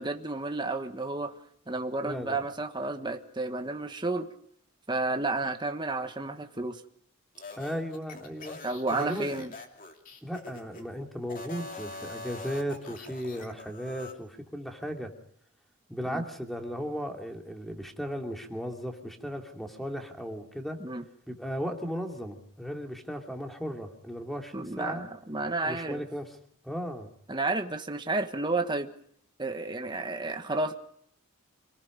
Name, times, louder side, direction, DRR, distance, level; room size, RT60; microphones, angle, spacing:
voice 1, 0.0-1.3 1.7-4.3 4.9-6.8 8.6-9.5 16.1-16.2 20.8-21.0 24.5-26.0 27.3-28.9 29.4-30.7, right 2 dB, 20° right, 6 dB, 1.4 m, -31 dB
voice 2, 2.0-2.4 7.6-8.6 8.9-9.5 10.2-15.1 15.9-20.8 21.3-25.1 25.6-26.3 26.6-27.1, equal, ahead, 3 dB, 2.8 m, -36 dB
sound 1, 7.3-10.8 11.2-14.2, left 2 dB, 40° left, 2.8 m, -44 dB
26.5 x 19.5 x 5.2 m, 0.67 s
head